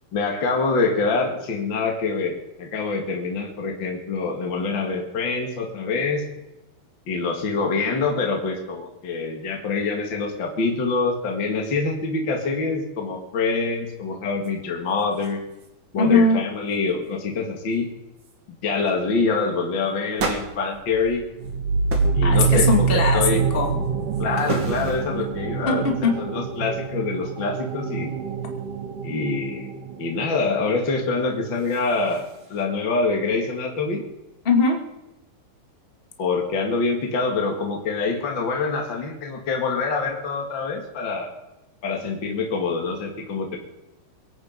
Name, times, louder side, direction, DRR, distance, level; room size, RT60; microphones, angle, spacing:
voice 1, 0.1-6.3 7.1-15.4 15.9-17.9 18.6-21.2 22.1-23.4 24.2-28.1 29.0-29.7 30.0-34.0 36.2-41.4 41.8-43.6, left 4 dB, 40° left, 1 dB, 2.1 m, -25 dB
sound 1, 14.4-14.5 14.9-15.7 16.0-16.3 16.7-17.1 17.7-17.8 18.2-18.4 18.8-19.0 20.2-21.5 21.9-22.2 22.6-23.1 23.6-25.3 31.3-32.6, right 3 dB, 40° right, 2.3 m, -35 dB
voice 2, 16.0-16.4 22.2-23.8 25.7-25.8 26.0-26.2 34.5-34.8, left 3 dB, 20° left, 3 dB, 1.7 m, -20 dB
sound 2, 21.4-30.8, right 5 dB, 70° right, 2.6 m, -25 dB
23.5 x 8.6 x 5.3 m, 0.96 s
omnidirectional pair, 4.1 m